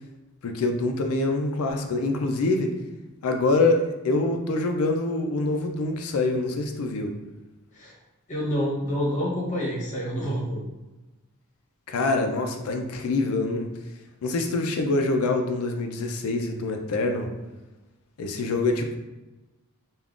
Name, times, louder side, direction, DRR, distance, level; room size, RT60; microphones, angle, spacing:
voice 1, 0.4-2.7 3.2-7.1 11.9-13.7 14.2-17.3 18.2-19.0, left 2 dB, 75° left, 4 dB, 0.4 m, -25 dB
voice 2, 8.3-10.6, equal, 35° left, -5 dB, 0.9 m, -28 dB
3.4 x 2.3 x 2.4 m, 1.1 s
head